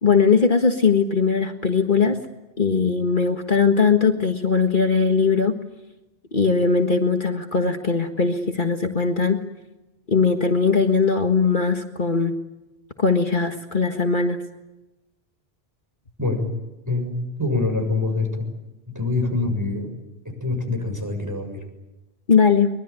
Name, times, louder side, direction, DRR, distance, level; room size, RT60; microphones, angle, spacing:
voice 1, 0.0-2.2 2.6-5.5 6.3-9.4 10.1-12.4 13.0-14.4 22.3-22.7, left 5 dB, 50° left, 4 dB, 1.8 m, -20 dB
voice 2, 16.2-16.5 16.9-18.5 18.9-19.9 20.2-21.6, left 3 dB, 15° right, 4 dB, 7.1 m, -25 dB
23.5 x 22.5 x 9.8 m, 1.0 s
omnidirectional pair, 1.1 m